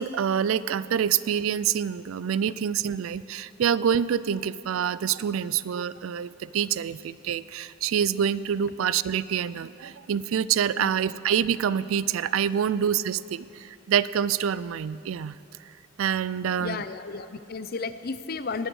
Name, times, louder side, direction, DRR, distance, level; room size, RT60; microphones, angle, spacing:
voice 1, 0.0-15.4 16.0-16.8, right 8 dB, 80° right, 17 dB, 0.4 m, -26 dB
voice 2, 16.6-18.7, left 4 dB, 45° left, 12 dB, 0.5 m, -33 dB
18.5 x 7.9 x 6.3 m, 2.8 s
head